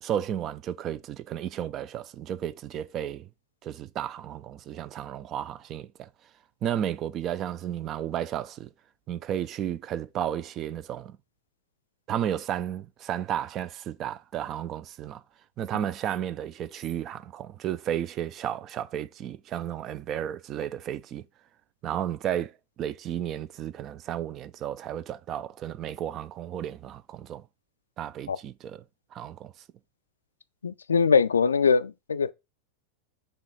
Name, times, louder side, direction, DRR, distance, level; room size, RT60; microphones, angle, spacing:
voice 1, 0.0-3.3 3.6-6.1 6.6-8.7 9.1-11.2 12.1-15.2 15.6-21.2 21.8-22.5 22.8-27.5 28.0-28.8 29.1-29.5, right 10 dB, 30° right, 0.3 m, -33 dB
voice 2, 30.6-32.3, left 5 dB, 70° left, 0.3 m, -22 dB
5.5 x 2.3 x 4.0 m
figure-of-eight pair, 90°, 0 cm